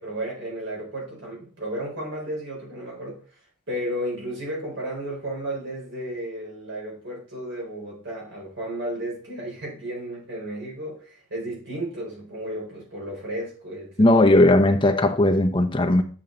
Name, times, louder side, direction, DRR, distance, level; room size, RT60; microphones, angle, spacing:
voice 1, 0.0-3.2 3.7-14.1, right 1 dB, 60° right, 4.3 m, -33 dB
voice 2, 14.0-16.0, left 1 dB, 25° left, 0.7 m, -17 dB
8.8 x 5.5 x 3.8 m
head